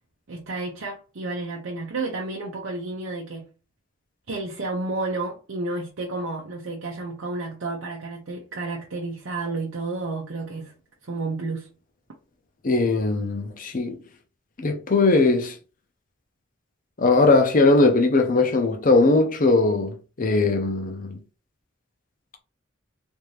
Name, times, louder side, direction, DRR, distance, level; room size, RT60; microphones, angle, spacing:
voice 1, 0.3-3.5 4.3-10.7 11.0-11.7, right 3 dB, 70° right, 0.7 m, -31 dB
voice 2, 12.6-14.0 14.6-15.6 17.0-21.2, left 3 dB, 40° left, 0.7 m, -20 dB
3.5 x 2.7 x 3.1 m
head